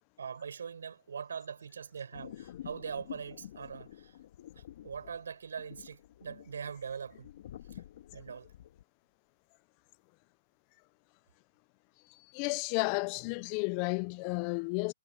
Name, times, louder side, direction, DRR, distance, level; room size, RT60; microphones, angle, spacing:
voice 1, 0.2-4.1 4.6-7.3 7.7-7.8 8.1-8.5, right 6 dB, 70° right, 6.2 m, -42 dB
sound 1, 2.1-8.8, left 12 dB, 55° left, 2.2 m, -49 dB
voice 2, 12.1-14.9, left 31 dB, 35° left, 0.8 m, -32 dB
hypercardioid pair, 135°, 0 cm